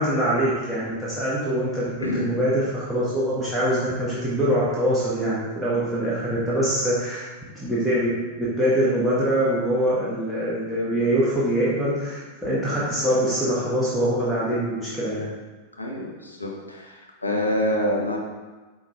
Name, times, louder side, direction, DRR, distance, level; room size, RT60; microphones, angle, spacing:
voice 1, 0.0-7.2 7.5-8.1 8.4-15.3, equal, ahead, -9 dB, 1.4 m, -24 dB
voice 2, 2.0-2.3 15.8-18.2, equal, 80° left, -1 dB, 0.9 m, -26 dB
5.9 x 3.9 x 4.2 m, 1.3 s
figure-of-eight pair, 90°, 0 cm